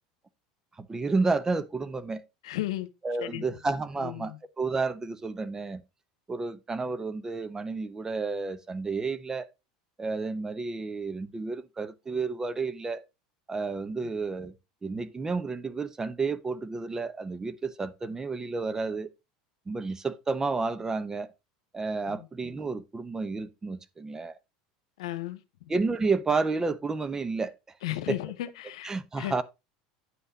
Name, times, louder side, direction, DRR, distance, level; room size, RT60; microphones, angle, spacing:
voice 1, 0.8-2.2 3.0-5.8 6.3-9.5 10.0-13.0 13.5-14.6 14.8-19.1 19.7-21.3 21.7-24.3 25.7-27.5 28.1-28.2 28.8-29.4, right 4 dB, 20° right, 0.8 m, -31 dB
voice 2, 2.4-2.9 3.2-3.4 4.0-4.3 22.1-22.2 25.0-25.4 27.8-29.3, left 15 dB, 80° left, 1.0 m, -34 dB
9.5 x 5.6 x 3.8 m
hypercardioid pair, 95°, 3 cm